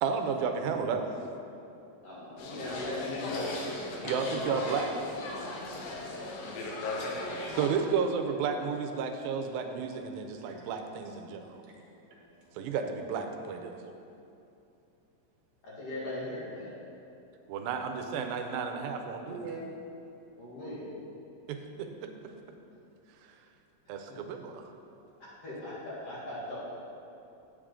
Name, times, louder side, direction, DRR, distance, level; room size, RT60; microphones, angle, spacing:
voice 1, 0.0-1.2 4.0-4.9 7.5-11.6 12.6-13.8 17.5-19.4 21.5-22.1 23.9-24.7, right 6 dB, 90° right, 5 dB, 2.5 m, -32 dB
voice 2, 2.0-3.8 15.6-16.7 20.4-20.9 24.1-24.2 25.4-26.6, left 2 dB, 45° left, -9 dB, 2.8 m, -39 dB
sound 1, 2.4-7.7, left 2 dB, 80° left, 2.8 m, -37 dB
voice 3, 11.5-12.5 19.2-19.6, right 6 dB, 75° right, -2 dB, 2.9 m, -45 dB
10.0 x 8.1 x 3.7 m, 2.7 s
omnidirectional pair, 4.1 m